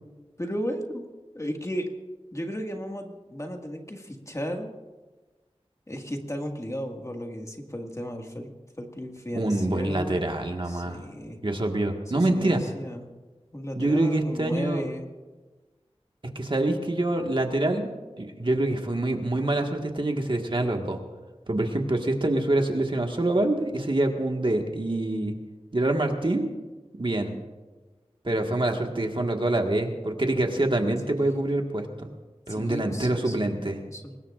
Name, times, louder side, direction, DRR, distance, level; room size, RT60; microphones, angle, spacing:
voice 1, 0.4-1.0 1.3-1.9 2.3-4.7 5.9-10.2 10.7-11.4 12.1-13.1 13.5-15.1 30.6-30.7 31.2-31.3 32.5-34.2, equal, 25° left, 2 dB, 1.9 m, -35 dB
voice 2, 9.3-11.0 11.4-12.6 13.8-14.8 16.4-17.9 18.2-21.0 21.5-25.3 25.7-26.5 27.0-27.3 28.2-32.1 32.5-33.8, right 2 dB, 50° right, 3 dB, 1.7 m, -25 dB
24.0 x 20.0 x 2.5 m, 1.2 s
wide cardioid pair, 55°, 11 cm